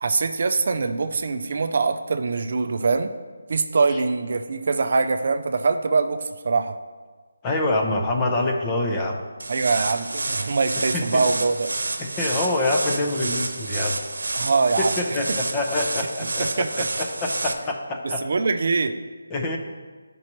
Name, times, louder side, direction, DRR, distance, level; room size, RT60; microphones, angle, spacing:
voice 1, 0.0-3.1 3.5-6.8 9.5-11.7 14.3-15.2 16.4-16.9 18.0-19.0, right 4 dB, 45° right, 8 dB, 0.4 m, -23 dB
voice 2, 7.4-9.2 10.9-11.2 12.0-14.0 14.8-18.2 19.3-19.6, left 2 dB, 15° left, 1 dB, 0.6 m, -26 dB
sound 1, 9.4-17.5, right 2 dB, 85° right, 0.9 m, -29 dB
11.0 x 5.3 x 3.0 m, 1.4 s
figure-of-eight pair, 170°, 0 cm